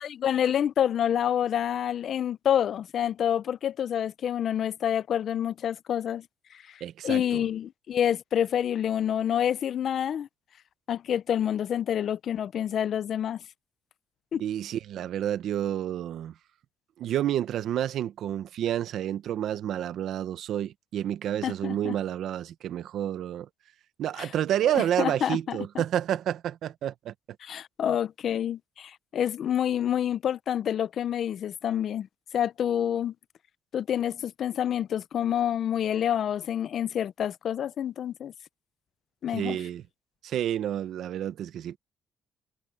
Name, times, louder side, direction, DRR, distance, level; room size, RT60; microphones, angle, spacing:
voice 1, 0.0-6.2 7.0-10.3 10.9-13.4 14.3-14.4 21.4-21.9 24.2-24.3 24.7-25.8 27.4-32.1 32.3-33.1 33.7-38.3 39.2-39.6, left 9 dB, 60° left, 0.6 m, -28 dB
voice 2, 6.8-7.4 14.4-16.3 17.0-23.5 24.0-27.1 39.3-39.8 40.2-41.8, right 11 dB, 75° right, 1.0 m, -29 dB
cardioid pair, 120°, 0 cm